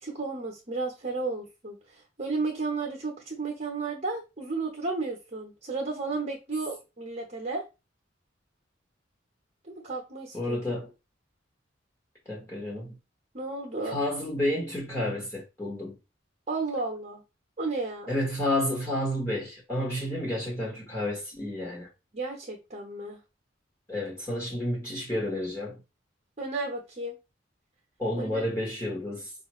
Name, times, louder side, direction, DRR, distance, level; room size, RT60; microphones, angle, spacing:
voice 1, 0.0-7.6 9.6-10.6 13.3-14.0 16.5-17.2 17.6-18.1 22.1-23.2 26.4-27.2 28.2-28.5, right 3 dB, 35° right, 0.9 m, -33 dB
voice 2, 10.3-10.9 12.3-13.0 13.8-16.0 18.1-21.9 23.9-25.8 28.0-29.3, left 1 dB, 15° left, 1.1 m, -30 dB
5.0 x 2.4 x 3.0 m
head